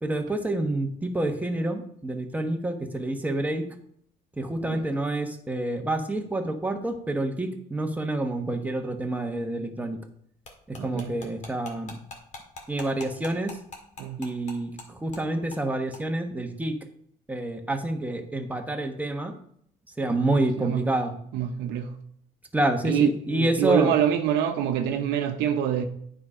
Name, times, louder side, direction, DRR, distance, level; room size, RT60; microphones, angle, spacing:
voice 1, 0.0-3.7 4.4-10.0 10.7-12.0 12.7-13.6 14.2-16.8 17.3-19.3 20.0-21.1 22.5-23.9, right 2 dB, 10° right, 1.2 m, -28 dB
sound 1, 10.4-14.9 15.1-15.2 15.5-15.6 15.9-16.0, left 3 dB, 45° left, 2.1 m, -42 dB
voice 2, 10.8-11.1 14.0-14.2 20.6-20.8 21.3-21.9 22.8-25.9, right 9 dB, 85° right, 0.9 m, -25 dB
9.4 x 5.1 x 4.9 m
cardioid pair, 110°, 17 cm